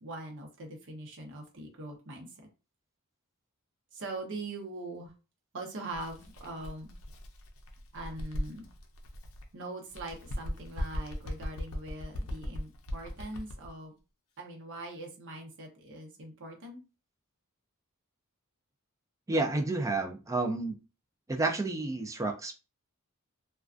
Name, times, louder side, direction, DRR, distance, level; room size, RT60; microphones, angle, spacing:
voice 1, 0.0-2.3 3.9-5.1 5.5-6.9 7.9-8.7 9.5-13.9 14.4-16.8, right 2 dB, 60° right, 1 dB, 0.7 m, -42 dB
Bird, 5.9-9.5 9.9-13.7, equal, 65° left, 0.5 m, -39 dB
voice 2, 19.3-20.8 21.3-22.5, right 2 dB, 15° right, 5 dB, 0.3 m, -30 dB
2.4 x 2.2 x 2.4 m, 0.31 s
head